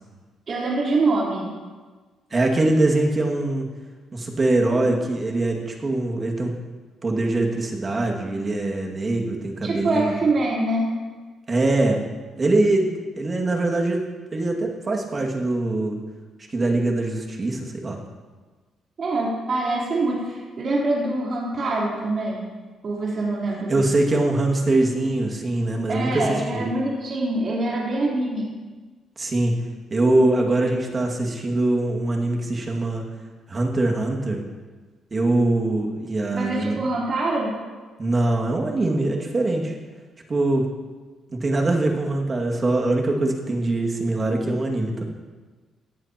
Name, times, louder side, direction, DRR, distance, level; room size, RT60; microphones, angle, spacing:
voice 1, 0.5-1.5 9.6-10.9 19.0-22.5 22.8-23.9 25.9-28.5 36.3-37.5, right 2 dB, 50° right, -5 dB, 3.6 m, -24 dB
voice 2, 2.3-3.7 4.1-6.5 7.0-10.1 11.5-12.0 12.4-12.9 13.2-14.0 14.3-16.0 16.5-18.0 23.7-26.6 29.2-29.5 29.9-33.1 33.5-34.5 35.1-36.8 38.0-39.8 40.3-40.7 41.3-45.0, right 2 dB, 35° right, 1 dB, 2.1 m, -22 dB
17.5 x 11.0 x 2.9 m, 1.4 s
cardioid pair, 90°, 0 cm